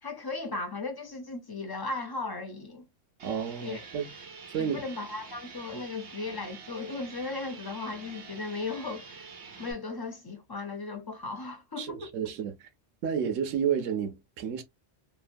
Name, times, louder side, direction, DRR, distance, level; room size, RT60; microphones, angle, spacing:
voice 1, 0.0-2.9 3.6-3.8 4.6-9.2 9.6-12.1, left 3 dB, 35° left, 0.3 m, -36 dB
sound 1, 3.2-9.7, right 5 dB, 65° right, 1.2 m, -47 dB
voice 2, 3.2-4.1 4.5-4.8 11.8-12.7 13.0-14.6, right 8 dB, 90° right, 1.0 m, -31 dB
3.1 x 2.5 x 2.4 m
omnidirectional pair, 1.3 m